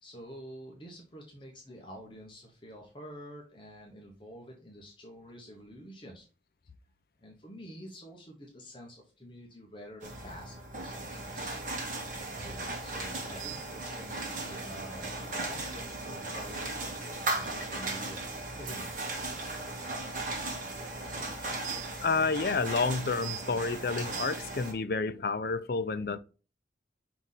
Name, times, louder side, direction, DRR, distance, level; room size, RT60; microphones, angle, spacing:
voice 1, 0.0-6.2 7.2-11.6 12.3-18.2 18.6-18.9, equal, 25° left, 1.1 m, -48 dB
sound 1, 10.0-24.7, right 2 dB, 45° right, 1.7 m, -37 dB
voice 2, 22.0-26.2, left 4 dB, 55° left, 0.5 m, -30 dB
5.5 x 4.6 x 4.0 m
head